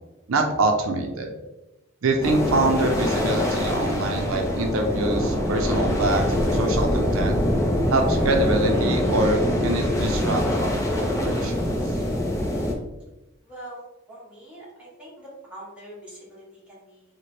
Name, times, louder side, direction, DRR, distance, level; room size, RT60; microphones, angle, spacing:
voice 1, 0.3-1.3 2.0-7.4 7.9-11.8, right 2 dB, 80° right, 3 dB, 0.5 m, -25 dB
sound 1, 2.2-12.7, left 1 dB, 15° left, 0.5 m, -24 dB
voice 2, 13.5-13.8 14.1-17.0, right 1 dB, 5° right, -7 dB, 1.1 m, -43 dB
3.2 x 2.1 x 4.2 m, 0.99 s
head